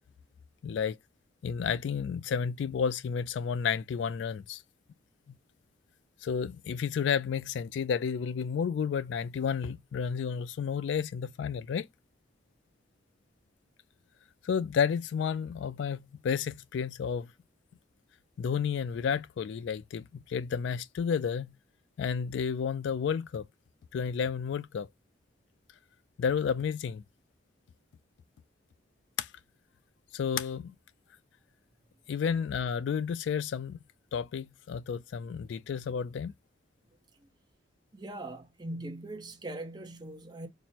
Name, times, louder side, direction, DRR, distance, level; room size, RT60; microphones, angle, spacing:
voice 1, 0.6-1.0 1.4-4.6 6.2-11.9 14.4-17.3 18.4-21.5 22.0-23.4 23.9-24.9 26.2-27.0 29.2-29.3 30.1-30.7 32.1-33.8 34.1-36.3, left 7 dB, 70° left, 0.3 m, -31 dB
voice 2, 37.9-40.5, right 1 dB, 20° right, 0.7 m, -41 dB
6.0 x 2.1 x 2.7 m
head